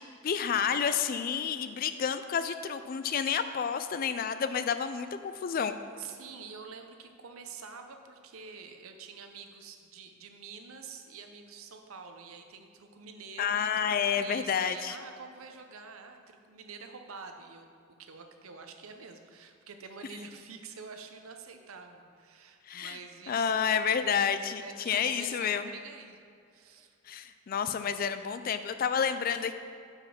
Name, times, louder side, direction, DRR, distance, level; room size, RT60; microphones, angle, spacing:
voice 1, 0.2-5.8 13.4-15.0 22.7-23.0 23.3-25.7 27.1-29.5, left 7 dB, 45° left, 11 dB, 0.3 m, -30 dB
voice 2, 6.0-17.7 18.0-24.1 24.6-26.2 26.5-27.0, right 5 dB, 85° right, 5 dB, 0.7 m, -47 dB
6.2 x 5.2 x 5.9 m, 2.4 s
head